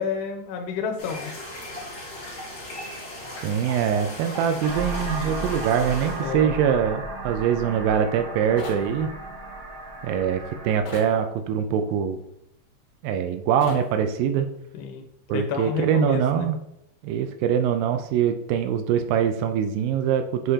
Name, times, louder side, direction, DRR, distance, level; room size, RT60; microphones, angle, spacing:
voice 1, 0.0-1.3 6.2-6.5 14.7-15.0 15.3-16.5, left 6 dB, 85° left, 4 dB, 2.8 m, -30 dB
sound 1, 1.0-6.3, left 1 dB, 35° left, 3.2 m, -37 dB
voice 2, 3.4-9.1 10.0-12.2 13.0-14.5 15.3-16.6 17.0-20.5, right 8 dB, 90° right, 7 dB, 2.0 m, -23 dB
sound 2, 4.6-10.8, right 2 dB, 55° right, 2.4 m, -34 dB
sound 3, 8.6-8.9 10.9-11.1 13.6-13.9, left 4 dB, 65° left, 2.4 m, -36 dB
8.0 x 5.7 x 2.8 m, 0.82 s
omnidirectional pair, 4.7 m